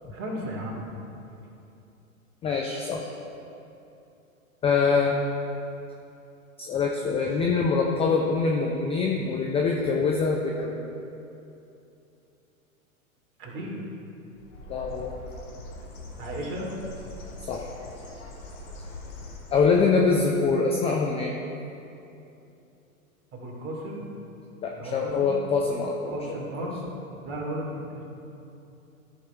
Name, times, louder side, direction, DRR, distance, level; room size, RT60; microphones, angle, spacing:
voice 1, 0.1-0.8 13.4-13.8 16.2-16.7 23.3-24.0 24.7-25.3 26.1-26.8 27.2-28.0, right 1 dB, 30° right, -2 dB, 2.5 m, -35 dB
voice 2, 2.4-3.1 4.6-5.1 6.6-10.9 14.7-15.1 17.5-17.7 19.5-21.3 24.6-26.1, left 4 dB, 15° left, 0 dB, 0.5 m, -24 dB
Bird, 14.3-19.9, left 2 dB, 55° left, 2.4 m, -42 dB
14.0 x 5.5 x 4.5 m, 2.8 s
hypercardioid pair, 110°, 43 cm